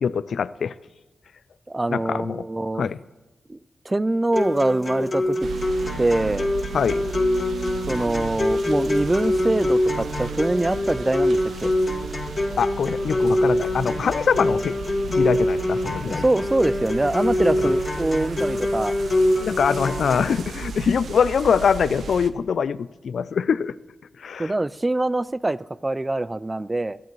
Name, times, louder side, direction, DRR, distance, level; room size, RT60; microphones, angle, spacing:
voice 1, 0.0-0.7 1.9-2.5 2.8-3.0 6.7-7.1 12.6-14.8 15.1-16.2 17.6-17.7 19.4-23.8 24.2-24.5, left 6 dB, 80° left, 0.3 m, -23 dB
voice 2, 1.7-2.9 3.5-3.6 3.9-5.4 6.0-6.5 7.9-11.7 16.0-18.9 24.4-27.0, right 2 dB, 25° right, 0.4 m, -24 dB
sound 1, 4.3-20.3, left 1 dB, 45° left, 1.9 m, -24 dB
sound 2, 5.4-22.3, right 6 dB, 80° right, 0.6 m, -36 dB
19.5 x 12.5 x 3.1 m
cardioid pair, 50°, 0 cm